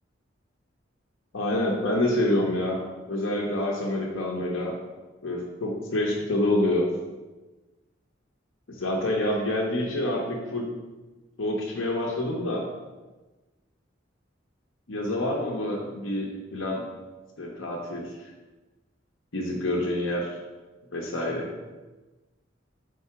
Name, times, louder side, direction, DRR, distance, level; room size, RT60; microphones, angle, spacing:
voice 1, 1.3-2.8 3.1-4.8 5.2-6.8 8.7-10.7 11.4-12.6 14.9-16.8 17.4-18.1 19.3-20.3 20.9-21.5, left 1 dB, 80° left, -1 dB, 0.8 m, -27 dB
4.8 x 3.8 x 5.6 m, 1.2 s
head